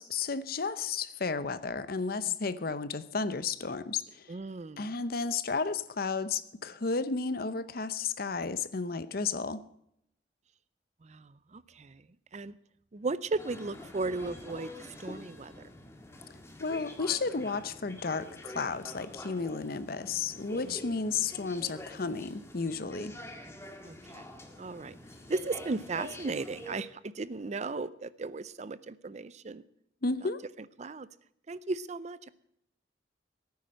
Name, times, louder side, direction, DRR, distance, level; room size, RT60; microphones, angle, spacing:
voice 1, 0.0-4.3 4.8-9.6 16.6-23.1 30.0-30.4, left 4 dB, 55° left, 14 dB, 0.8 m, -33 dB
voice 2, 4.3-4.9 11.0-12.1 12.3-12.5 12.9-15.7 20.6-20.7 23.8-24.3 24.6-25.0 25.3-29.6 30.8-31.1 31.5-32.3, right 3 dB, 40° right, 17 dB, 0.5 m, -36 dB
sound 1, 13.4-26.8, left 1 dB, 15° left, 1.8 m, -46 dB
17.0 x 9.5 x 6.4 m, 0.76 s
head